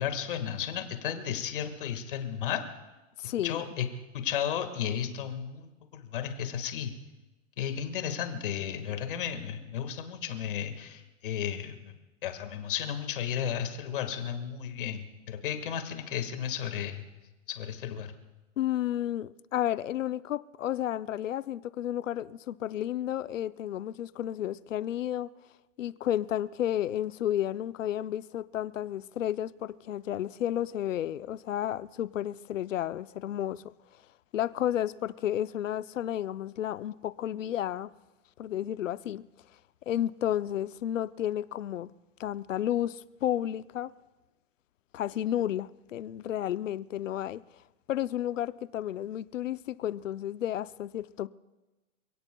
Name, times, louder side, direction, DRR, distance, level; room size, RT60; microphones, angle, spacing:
voice 1, 0.0-2.6 3.4-3.9 4.1-6.9 7.6-11.9 12.2-17.1 17.5-18.1, left 9 dB, 40° left, 1.8 m, -33 dB
voice 2, 3.2-3.6 18.6-25.3 25.8-33.7 34.3-37.9 38.4-39.2 39.9-41.9 42.2-43.9 44.9-47.4 47.9-51.3, left 11 dB, 75° left, 0.7 m, -32 dB
28.5 x 17.0 x 2.3 m
hypercardioid pair, 175°, 39 cm